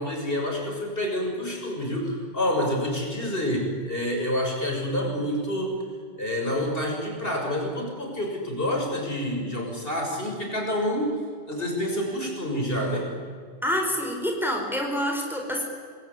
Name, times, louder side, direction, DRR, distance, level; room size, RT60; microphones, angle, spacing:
voice 1, 0.0-5.8 6.2-11.1 11.5-13.1, equal, 50° left, 1 dB, 6.4 m, -28 dB
voice 2, 13.6-15.6, equal, ahead, 1 dB, 4.3 m, -27 dB
26.5 x 20.5 x 9.8 m, 2.1 s
omnidirectional pair, 1.2 m